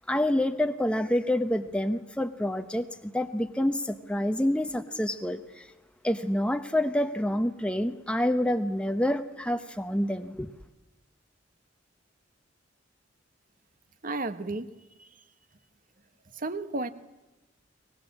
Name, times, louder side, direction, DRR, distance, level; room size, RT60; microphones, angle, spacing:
voice 1, 0.0-5.7 6.0-10.5, left 1 dB, 5° left, 0.9 m, -27 dB
voice 2, 14.0-14.7 15.0-15.1 16.4-16.9, right 2 dB, 45° right, 1.2 m, -32 dB
23.5 x 19.5 x 8.6 m
head